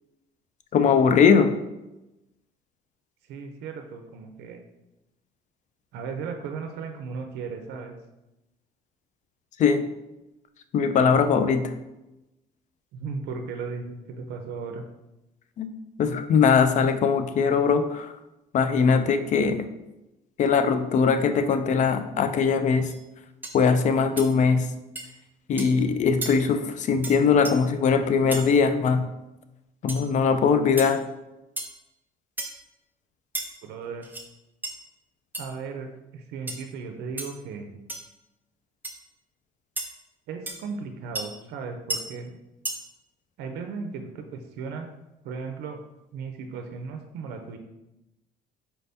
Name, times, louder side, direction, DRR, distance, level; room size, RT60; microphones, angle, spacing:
voice 1, 0.7-1.5 9.6-9.9 10.7-11.7 15.6-15.7 16.0-18.1 18.5-19.7 20.4-22.9 23.5-24.7 25.5-29.1 29.8-31.0, left 5 dB, 45° left, 10 dB, 0.4 m, -21 dB
voice 2, 3.3-4.6 5.9-7.9 12.9-14.8 33.6-34.1 35.4-37.8 40.3-42.4 43.4-44.9 45.2-45.8 46.1-47.6, right 5 dB, 80° right, 5 dB, 0.5 m, -36 dB
sound 1, 22.9-23.0 23.4-23.6 24.2-24.3 24.9-25.1 25.6-25.7 26.2-26.3 27.0-27.2 27.4-27.5 28.3-28.5 29.9-30.0 30.8-30.9 31.6-31.8 32.4-32.6 33.3-33.5 34.0-34.2 34.6-34.7 35.3-35.4 36.5-36.6 37.2-37.3 37.9-38.1 38.8-38.9 39.8-39.9 40.5-40.6 41.1-41.2 41.9-42.0 42.6-42.8, right 2 dB, 10° right, 0.6 m, -33 dB
4.4 x 3.3 x 2.7 m, 0.96 s
cardioid pair, 110°, 17 cm